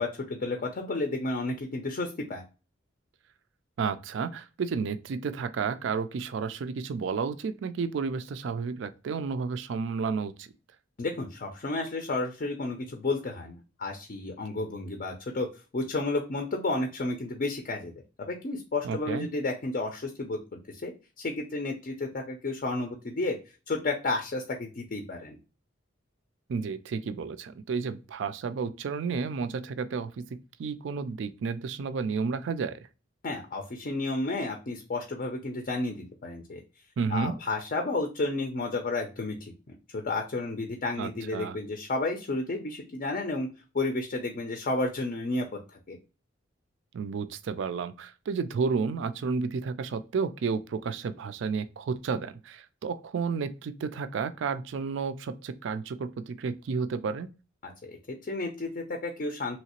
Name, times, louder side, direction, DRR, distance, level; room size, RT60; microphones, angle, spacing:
voice 1, 0.0-2.4 11.0-15.5 15.7-20.4 20.7-20.9 21.2-23.4 23.7-25.4 33.2-36.6 37.1-39.5 39.9-43.5 43.7-46.0 57.6-59.6, left 2 dB, 45° left, 0.5 m, -32 dB
voice 2, 3.8-10.5 18.8-19.3 26.5-30.2 30.6-32.9 37.0-37.4 41.0-41.6 46.9-57.3, right 5 dB, 65° right, 0.3 m, -31 dB
3.1 x 2.9 x 2.8 m
head